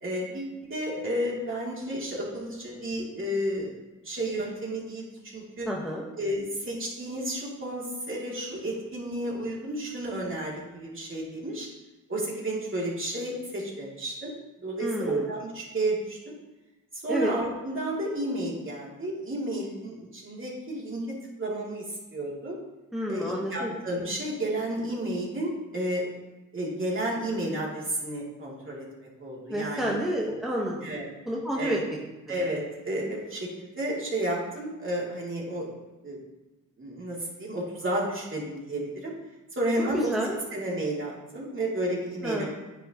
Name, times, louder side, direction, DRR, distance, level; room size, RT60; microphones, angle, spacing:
voice 1, 0.0-3.7 4.0-5.7 6.2-11.7 12.1-14.3 14.6-16.3 16.9-21.0 21.4-21.8 22.1-22.6 23.1-26.0 26.5-30.0 30.8-31.1 31.5-31.8 32.3-35.7 36.0-36.2 36.8-39.1 39.5-40.1 40.5-42.5, right 1 dB, 40° right, -4 dB, 2.6 m, -32 dB
voice 2, 5.7-6.1 14.8-15.2 17.1-17.3 22.9-23.7 29.5-30.9 31.3-31.8 39.9-40.4 42.2-42.5, equal, ahead, -3 dB, 1.1 m, -29 dB
9.7 x 8.4 x 2.9 m, 1.1 s
cardioid pair, 110°, 33 cm